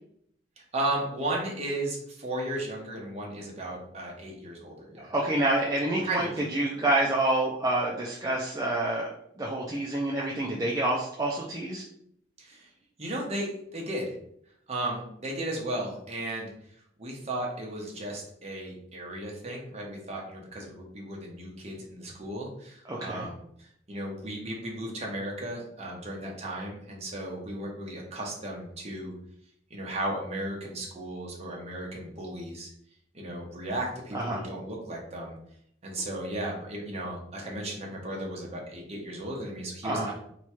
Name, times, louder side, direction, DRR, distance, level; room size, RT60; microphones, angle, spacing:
voice 1, 0.7-5.1 6.0-6.3 12.4-12.7 13.0-14.1 14.7-16.5 17.0-29.1 29.7-32.7 33.1-35.4 35.8-40.1, right 1 dB, 35° right, -1 dB, 1.0 m, -35 dB
voice 2, 5.0-9.1 9.4-11.8 22.9-23.3 34.1-34.4 39.8-40.1, right 1 dB, 20° right, -3 dB, 0.5 m, -28 dB
3.0 x 2.3 x 4.3 m, 0.70 s
head